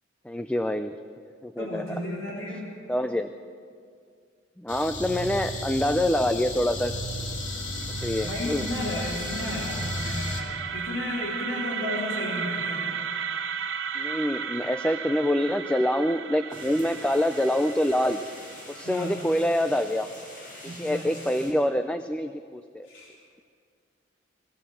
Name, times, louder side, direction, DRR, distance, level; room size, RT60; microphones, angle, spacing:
voice 1, 0.3-0.9 1.4-1.8 2.9-3.3 4.6-6.9 8.0-8.6 14.0-18.2 18.7-20.1 20.8-22.9, left 1 dB, 5° left, 8 dB, 0.5 m, -26 dB
voice 2, 1.6-2.7 8.2-13.0 18.8-19.2 20.6-21.4 22.9-23.1, left 1 dB, 90° left, -4 dB, 3.9 m, -33 dB
sound 1, 4.7-10.4, left 1 dB, 65° left, 2.7 m, -33 dB
sound 2, 7.2-19.1, right 6 dB, 70° right, 0.9 m, -35 dB
sound 3, 16.5-21.5, left 1 dB, 45° left, 5.7 m, -45 dB
21.5 x 17.0 x 7.2 m, 2.2 s
head